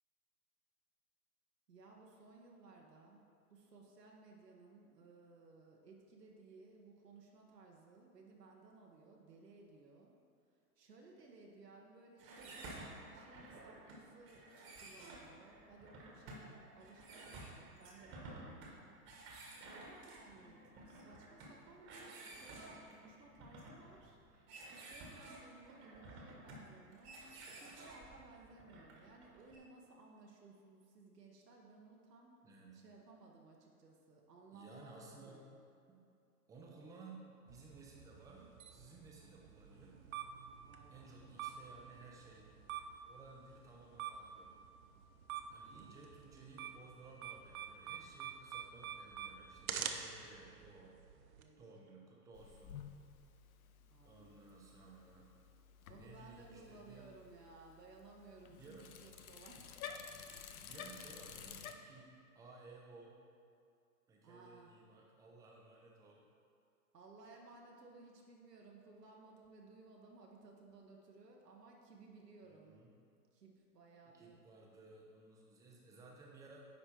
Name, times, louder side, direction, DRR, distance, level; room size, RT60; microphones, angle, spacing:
voice 1, 1.7-3.2 3.5-10.1 10.8-14.5 14.7-18.9 19.7-24.2 24.7-27.3 27.6-32.4 32.7-35.5 40.6-41.1 45.7-46.0 51.4-52.0 53.9-54.4 55.9-59.6 64.2-64.7 66.9-72.8 73.3-74.4, right 3 dB, 80° right, -1 dB, 1.2 m, -59 dB
Using exercise device, 12.2-29.6, right 2 dB, 25° right, 1.3 m, -53 dB
voice 2, 32.4-32.8 34.5-35.5 35.9-36.0 36.5-40.0 40.9-42.5 43.1-44.5 45.5-51.0 51.6-52.9 54.0-55.3 55.9-57.1 58.5-58.9 60.6-63.1 64.1-66.2 72.4-72.9 74.1-76.7, right 3 dB, 5° right, -2 dB, 0.6 m, -57 dB
sound 1, 37.5-51.4, right 8 dB, 60° right, 0.7 m, -48 dB
Bicycle, 52.3-61.7, left 7 dB, 60° left, 0.7 m, -53 dB
9.8 x 3.4 x 4.4 m, 2.4 s
figure-of-eight pair, 115°, 48 cm